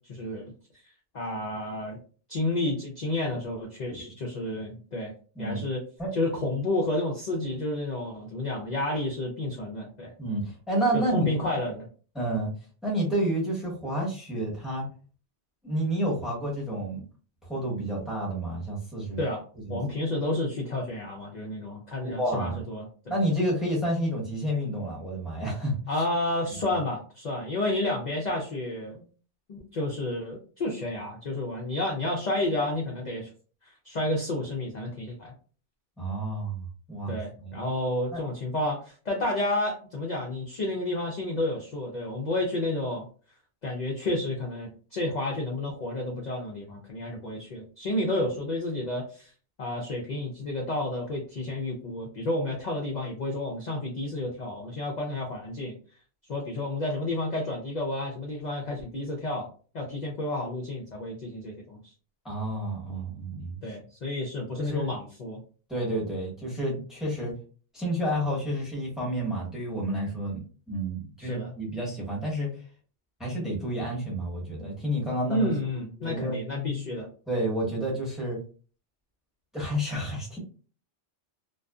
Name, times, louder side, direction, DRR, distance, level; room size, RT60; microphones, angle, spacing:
voice 1, 0.1-0.5 1.1-2.0 2.3-5.1 5.4-5.8 6.1-10.1 10.9-11.9 19.2-23.2 25.9-29.0 29.5-33.3 33.6-35.3 37.1-43.1 43.6-49.3 49.6-55.8 56.3-59.5 59.7-61.8 63.6-65.4 71.2-71.5 75.3-77.1, left 1 dB, 50° left, -1 dB, 0.5 m, -31 dB
voice 2, 10.2-11.3 12.1-12.5 12.8-14.9 15.6-17.0 17.5-19.2 19.7-19.8 22.0-22.6 23.1-25.8 36.0-36.6 36.9-37.1 37.4-37.6 38.1-38.2 62.2-63.6 64.6-64.9 65.7-67.3 67.7-72.5 73.2-75.5 76.0-76.4 77.3-78.4 79.5-80.4, right 1 dB, ahead, -4 dB, 0.9 m, -30 dB
2.5 x 2.3 x 2.3 m, 0.39 s
omnidirectional pair, 1.2 m